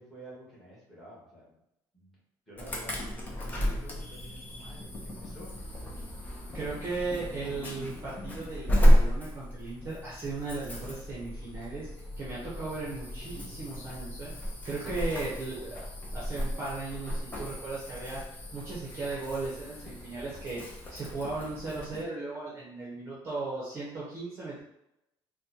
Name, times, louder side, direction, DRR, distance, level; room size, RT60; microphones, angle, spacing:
voice 1, 0.0-1.6 1.9-2.2 2.5-3.0 3.5-5.5, right 1 dB, ahead, -6 dB, 1.4 m, -50 dB
Insect / Alarm, 2.6-22.0, equal, 20° left, 0.6 m, -32 dB
voice 2, 6.5-11.9 12.2-14.3 14.6-24.6, right 3 dB, 30° right, -7 dB, 0.8 m, -37 dB
4.0 x 2.2 x 2.8 m, 0.84 s
cardioid pair, 170°, 9 cm